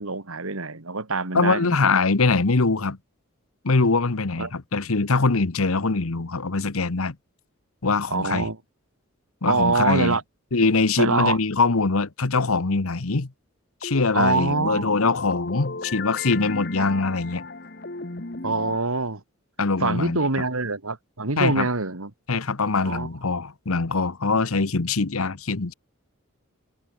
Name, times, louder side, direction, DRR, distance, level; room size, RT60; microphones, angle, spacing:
voice 1, 0.0-1.8 4.4-4.5 8.1-8.6 9.4-10.2 11.0-11.4 14.1-14.9 16.8-16.9 18.4-19.2 19.8-22.1 22.8-23.1, right 3 dB, 75° right, 2.1 m, -25 dB
voice 2, 1.3-3.0 3.6-7.2 7.8-8.5 9.4-10.2 10.5-13.3 13.8-17.4 19.6-20.2 21.4-21.7 22.3-25.7, left 3 dB, 80° left, 1.1 m, -23 dB
sound 1, 13.8-18.8, left 3 dB, 45° left, 1.5 m, -34 dB
head